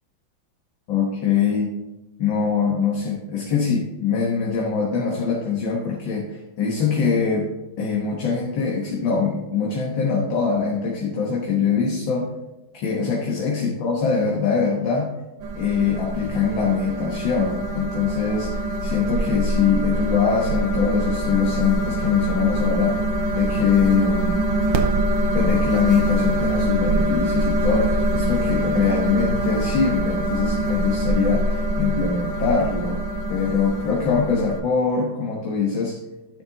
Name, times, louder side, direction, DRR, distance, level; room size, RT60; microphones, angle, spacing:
voice 1, 0.9-1.7 2.2-7.5 7.8-12.3 12.7-15.1 15.6-23.0 23.4-24.5 25.3-36.0, left 5 dB, 70° left, -1 dB, 2.0 m, -23 dB
sound 1, 15.4-34.6, right 1 dB, 75° right, 1.7 m, -24 dB
11.0 x 6.7 x 3.9 m, 1.1 s
omnidirectional pair, 2.2 m